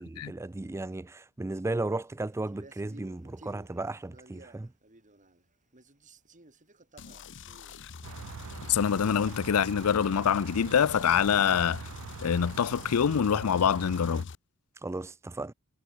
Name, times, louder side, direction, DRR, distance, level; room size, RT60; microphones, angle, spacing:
voice 1, 0.0-4.7 14.8-15.5, right 2 dB, 10° right, 0.4 m, -35 dB
Male speech man speaking, 2.5-5.5 5.7-9.9, right 2 dB, 35° right, 4.6 m, -55 dB
sound 1, 7.0-14.4, left 5 dB, 60° left, 0.8 m, -45 dB
sound 2, 8.0-14.2, right 6 dB, 80° right, 0.5 m, -44 dB
voice 2, 8.7-11.8 12.2-14.3, left 7 dB, 80° left, 0.5 m, -25 dB
head